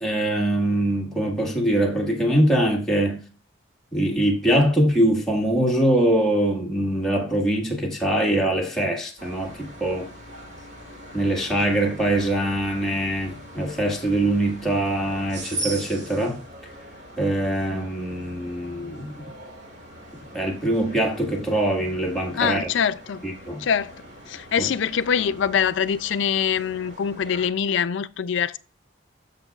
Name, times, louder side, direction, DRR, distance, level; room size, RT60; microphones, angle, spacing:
voice 1, 0.0-3.2 3.9-10.1 11.1-16.4 17.2-19.2 20.3-22.7 23.2-23.6 24.6-24.7, right 1 dB, ahead, 1.6 m, -23 dB
sound 1, 9.2-27.5, right 1 dB, 60° right, 2.1 m, -41 dB
voice 2, 22.3-23.2 23.6-24.0 24.3-28.6, left 7 dB, 75° left, 0.4 m, -24 dB
11.0 x 6.6 x 2.4 m
head